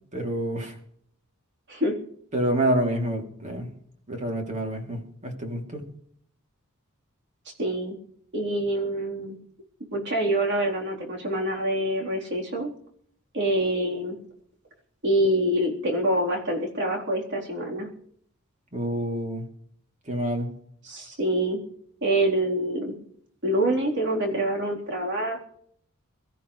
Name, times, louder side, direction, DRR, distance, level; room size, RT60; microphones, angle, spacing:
voice 1, 0.1-0.8 2.3-3.7 4.1-5.8 18.7-19.5 20.1-20.5, right 1 dB, 35° right, 2 dB, 3.1 m, -27 dB
voice 2, 7.6-8.0 8.3-9.4 9.9-12.7 13.3-14.2 15.0-17.9 20.8-21.6 22.0-22.9 23.4-25.5, right 1 dB, 55° right, -1 dB, 3.9 m, -26 dB
24.0 x 14.0 x 3.3 m, 0.64 s
head